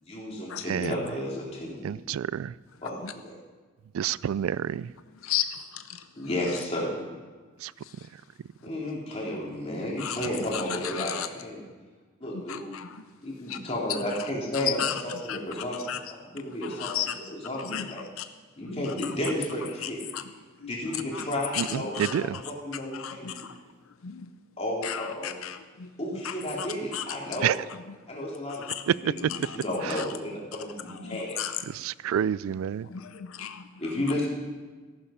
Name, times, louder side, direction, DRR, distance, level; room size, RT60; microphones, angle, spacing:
voice 1, 0.0-2.0 2.8-3.3 6.2-7.1 8.6-11.6 12.2-12.8 13.2-16.0 16.3-18.0 18.6-20.0 20.6-23.3 24.6-25.4 26.0-27.6 28.1-28.7 29.0-31.4 33.8-34.3, left 1 dB, 30° left, 3.1 m, -32 dB
voice 2, 1.8-2.5 3.9-4.9 7.6-7.7 21.6-21.7 22.0-22.4 27.4-27.5 31.7-32.9, right 9 dB, 80° right, 0.3 m, -28 dB
voice 3, 12.5-12.9 13.5-13.6 14.6-14.9 15.3-15.4 15.9-16.0 16.8-17.1 17.7-17.8 18.2-18.3 19.8-20.2 21.1-21.2 21.5-21.6 21.9-22.2 22.9-23.5 24.0-24.3 24.8-25.9 26.9-27.0 28.7-28.8 29.3-29.6 31.0-31.5 32.9-33.6, left 10 dB, 85° left, 0.6 m, -33 dB
14.5 x 11.5 x 5.0 m
head